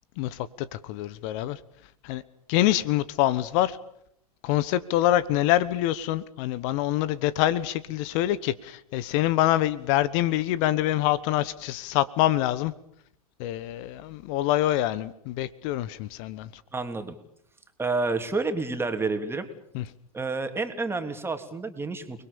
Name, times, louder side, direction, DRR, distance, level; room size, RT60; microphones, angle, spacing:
voice 1, 0.2-1.6 2.0-2.2 2.5-3.8 4.4-12.7 13.4-16.6 19.7-19.9, left 14 dB, 55° left, 18 dB, 1.2 m, -25 dB
voice 2, 16.7-17.2 17.8-19.5 20.1-22.2, right 3 dB, 10° right, 7 dB, 3.2 m, -29 dB
29.5 x 21.0 x 7.1 m, 0.73 s
hypercardioid pair, 100°, 20 cm